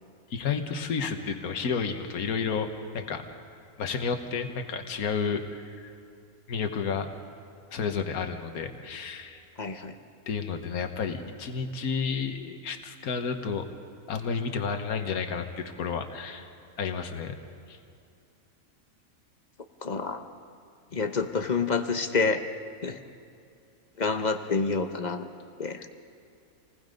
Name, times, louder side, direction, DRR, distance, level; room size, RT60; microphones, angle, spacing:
voice 1, 0.3-2.7 2.9-3.2 3.8-5.9 6.5-7.1 7.7-9.4 10.3-13.7 14.1-16.5 16.8-17.4 17.7-17.8 25.7-25.9, left 5 dB, 80° left, 6 dB, 1.6 m, -31 dB
voice 2, 9.6-9.9 19.8-20.2 20.9-22.4 22.8-23.0 24.0-25.3 25.6-25.8, left 4 dB, 35° left, 7 dB, 0.9 m, -28 dB
27.5 x 19.5 x 5.2 m, 2.5 s
omnidirectional pair, 1.5 m